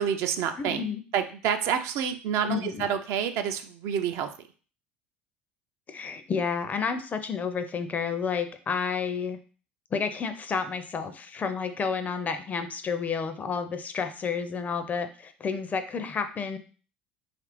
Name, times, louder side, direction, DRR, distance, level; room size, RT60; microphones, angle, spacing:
voice 1, 0.0-0.9 1.1-4.3, right 8 dB, 55° right, 7 dB, 0.3 m, -28 dB
voice 2, 0.6-1.0 2.4-2.9 5.9-9.4 9.9-16.6, left 5 dB, 30° left, 9 dB, 0.4 m, -30 dB
2.9 x 2.5 x 3.0 m, 0.39 s
figure-of-eight pair, 65°, 5 cm